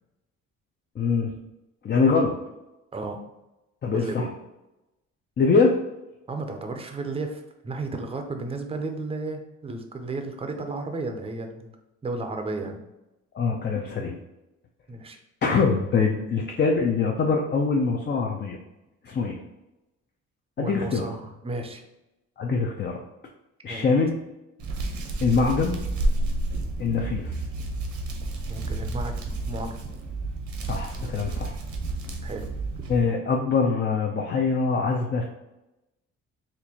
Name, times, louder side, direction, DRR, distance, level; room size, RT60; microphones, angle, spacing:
voice 1, 1.0-1.3 1.8-2.3 3.8-4.3 5.4-5.8 13.3-14.2 15.4-18.6 19.0-19.4 20.6-21.0 22.4-23.0 23.6-24.1 25.2-25.8 26.8-27.4 30.6-31.6 32.9-35.2, left 4 dB, 35° left, 1 dB, 0.5 m, -23 dB
voice 2, 3.9-4.3 6.3-11.7 12.0-12.8 14.9-15.2 20.6-21.8 23.7-23.9 28.5-29.8 32.2-32.5, right 2 dB, 20° right, 5 dB, 0.5 m, -33 dB
Hands, 24.6-33.0, right 2 dB, 70° right, 0.8 m, -30 dB
4.3 x 2.5 x 2.8 m, 0.95 s
cardioid pair, 90°, 30 cm